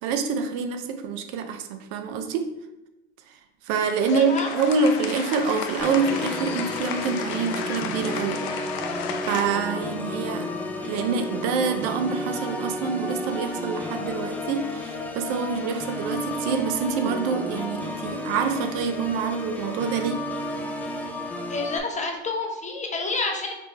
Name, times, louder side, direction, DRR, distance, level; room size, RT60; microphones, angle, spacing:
voice 1, 0.0-2.4 3.6-8.5 9.2-10.5 10.9-20.2, right 5 dB, 65° right, 7 dB, 0.6 m, -26 dB
sound 1, 3.7-9.5, left 7 dB, 65° left, 0.6 m, -33 dB
voice 2, 4.2-4.5 21.5-23.5, left 3 dB, 20° left, 2 dB, 0.8 m, -29 dB
Organ, 5.8-21.8, left 1 dB, 5° left, 0.4 m, -32 dB
4.2 x 3.1 x 3.2 m, 0.93 s
hypercardioid pair, 90°, 33 cm